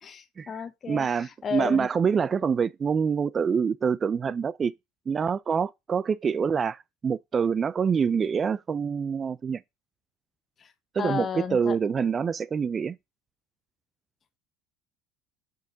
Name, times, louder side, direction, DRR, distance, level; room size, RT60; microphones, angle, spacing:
voice 1, 0.0-1.9 10.6-10.7 11.0-11.8, left 6 dB, 35° left, 1.0 m, -33 dB
voice 2, 0.9-4.7 5.1-9.6 10.9-13.0, right 6 dB, 30° right, 0.3 m, -26 dB
6.4 x 5.2 x 3.9 m
hypercardioid pair, 75°, 0 cm